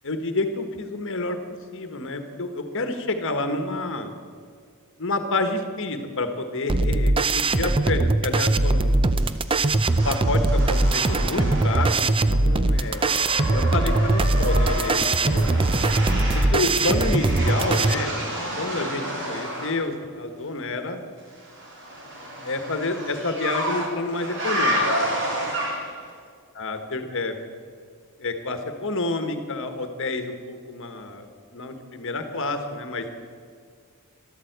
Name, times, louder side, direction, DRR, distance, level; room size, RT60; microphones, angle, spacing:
voice 1, 0.0-1.4 1.7-4.1 5.0-9.0 10.0-13.0 13.5-15.6 16.5-18.1 18.6-21.0 22.4-25.2 26.5-27.3 28.2-31.2 31.5-33.0, left 2 dB, 60° left, 7 dB, 1.3 m, -29 dB
sound 1, 6.7-17.9, right 2 dB, 25° right, 0.5 m, -21 dB
sound 2, 9.2-12.2 12.5-19.8 21.4-26.1, equal, 60° right, 3.8 m, -30 dB
13.5 x 12.5 x 8.0 m, 2.1 s
head